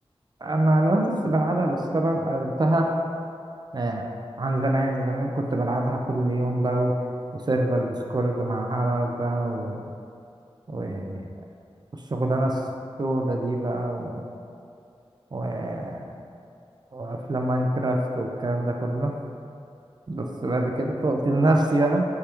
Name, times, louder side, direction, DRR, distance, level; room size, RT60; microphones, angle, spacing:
voice 1, 0.4-2.9 3.7-4.0 4.4-6.9 7.3-9.8 10.7-11.3 12.1-12.6 13.0-14.2 15.3-16.0 16.9-19.1 20.1-22.0, right 1 dB, 45° right, 1 dB, 0.4 m, -25 dB
4.7 x 3.4 x 2.9 m, 2.5 s
cardioid pair, 40°, 10 cm